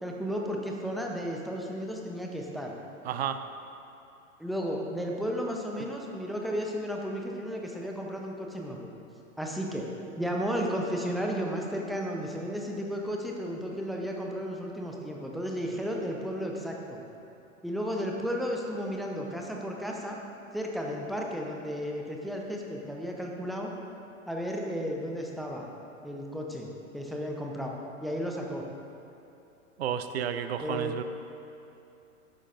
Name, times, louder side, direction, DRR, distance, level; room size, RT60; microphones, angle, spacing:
voice 1, 0.0-2.7 4.4-8.9 9.4-9.9 10.2-17.0 17.6-20.2 20.5-23.7 24.3-25.7 26.0-27.7 28.0-28.7 30.6-31.0, equal, ahead, -1 dB, 0.5 m, -33 dB
voice 2, 3.0-3.4 29.8-31.0, right 9 dB, 50° right, 10 dB, 0.6 m, -31 dB
13.5 x 10.5 x 2.5 m, 2.8 s
figure-of-eight pair, 100°, 41 cm